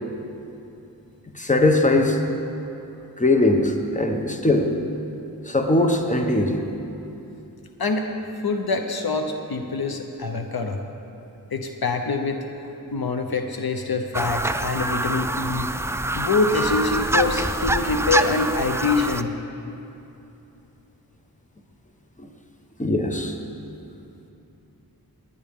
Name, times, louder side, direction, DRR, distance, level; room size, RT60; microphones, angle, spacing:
voice 1, 1.3-2.2 3.2-4.7 5.4-6.6 22.2-22.3 22.8-23.4, left 2 dB, 20° left, 4 dB, 1.1 m, -20 dB
voice 2, 8.4-10.8 11.5-12.4 12.9-15.7 16.1-19.3, left 4 dB, 75° left, 5 dB, 0.8 m, -25 dB
sound 1, 14.1-19.2, right 2 dB, 10° right, 0.3 m, -25 dB
19.0 x 9.6 x 3.6 m, 2.8 s
wide cardioid pair, 50°, 37 cm